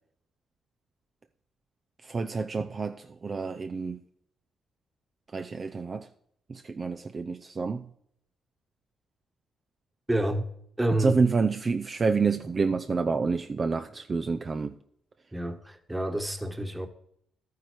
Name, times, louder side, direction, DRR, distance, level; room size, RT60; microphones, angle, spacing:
voice 1, 2.0-4.0 5.3-6.1 6.5-7.9 11.0-14.8, right 4 dB, 35° right, 0.6 m, -28 dB
voice 2, 10.1-10.5 10.8-11.2 15.3-16.9, right 1 dB, 10° right, 1.4 m, -28 dB
12.5 x 9.4 x 4.7 m
cardioid pair, 90°, 0 cm